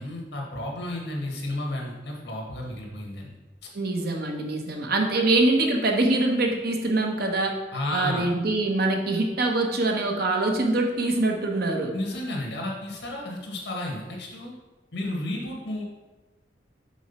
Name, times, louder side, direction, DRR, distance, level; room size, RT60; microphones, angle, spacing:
voice 1, 0.0-3.3 5.1-5.2 7.7-8.3 11.9-14.5 14.9-15.8, left 1 dB, 70° left, -1 dB, 1.7 m, -32 dB
voice 2, 3.7-7.5 7.9-11.9, right 2 dB, 60° right, 2 dB, 1.0 m, -24 dB
6.2 x 3.9 x 5.6 m, 1.1 s
head